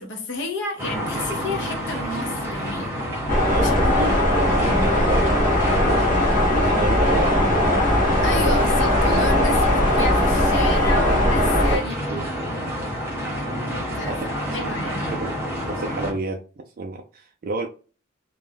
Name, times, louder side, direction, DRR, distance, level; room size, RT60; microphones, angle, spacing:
voice 1, 0.0-4.2 8.2-12.0 13.3-15.1, left 2 dB, 55° left, 0.7 m, -32 dB
sound 1, 0.8-16.1, equal, 10° right, 0.9 m, -29 dB
sound 2, 3.3-11.8, left 1 dB, 40° left, 1.1 m, -19 dB
voice 2, 3.5-5.4 5.7-6.1 6.5-7.8 11.7-11.8 12.1-12.2 14.1-14.2 15.2-15.3 15.7-16.4 16.8-17.7, right 2 dB, 45° right, 0.3 m, -30 dB
2.5 x 2.1 x 3.3 m
head